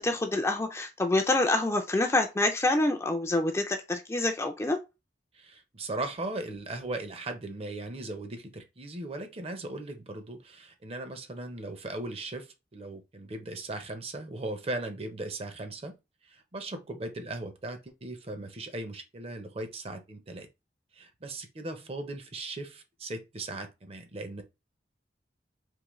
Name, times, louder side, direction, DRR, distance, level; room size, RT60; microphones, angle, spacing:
voice 1, 0.0-4.8, left 2 dB, 15° left, 0.4 m, -27 dB
voice 2, 5.3-16.0 16.3-20.5 20.9-24.4, right 2 dB, 35° right, 0.6 m, -38 dB
3.6 x 2.9 x 3.1 m
head